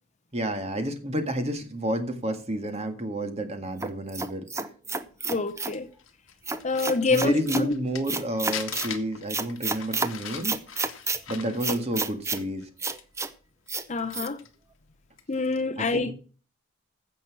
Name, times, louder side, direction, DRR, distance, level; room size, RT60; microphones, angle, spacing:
voice 1, 0.3-4.5 7.1-10.6 11.3-12.7 15.8-16.1, right 1 dB, 30° right, 1.7 m, -30 dB
sound 1, 3.8-5.8 6.4-7.7 8.1-8.9 9.3-10.1 10.4-11.2 11.6-12.4 12.8-13.3 13.7-13.8 14.1-14.3, right 4 dB, 15° right, 0.7 m, -30 dB
Crumpling crinkling, 5.2-8.2 8.5-12.6 13.0-13.1 13.7-14.5 15.1-15.3, left 8 dB, 60° left, 1.6 m, -40 dB
voice 2, 5.2-5.9 6.6-7.7 13.9-14.4 15.3-16.1, left 3 dB, 35° left, 0.7 m, -26 dB
15.5 x 6.0 x 5.9 m
head